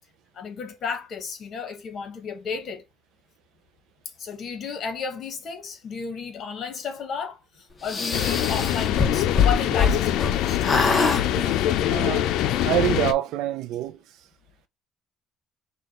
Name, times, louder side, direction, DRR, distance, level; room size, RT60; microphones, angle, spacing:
voice 1, 0.3-2.8 4.2-10.7, left 6 dB, 50° left, 1.7 m, -33 dB
sound 1, 7.9-10.3 10.6-11.2, left 5 dB, 25° left, 0.9 m, -23 dB
sound 2, 8.1-13.1, left 12 dB, 80° left, 0.5 m, -24 dB
voice 2, 11.9-12.2 12.6-14.0, right 12 dB, 80° right, 0.5 m, -26 dB
5.7 x 2.4 x 3.2 m
cardioid pair, 130°, 0 cm